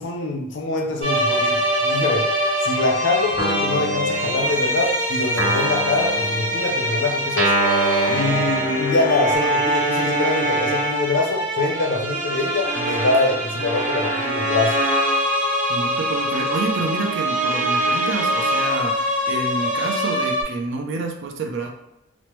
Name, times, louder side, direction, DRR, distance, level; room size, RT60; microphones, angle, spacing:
voice 1, 0.0-2.3 2.6-7.6 8.1-14.8, left 2 dB, 60° left, 2 dB, 0.5 m, -24 dB
sound 1, 1.0-20.4, equal, 40° right, 1.1 m, -23 dB
Guitar, 3.4-4.9 5.4-9.3, right 2 dB, 10° right, 0.8 m, -26 dB
voice 2, 8.1-8.5 15.7-21.7, right 3 dB, 60° right, 3 dB, 0.5 m, -28 dB
3.1 x 2.1 x 3.0 m, 0.89 s
head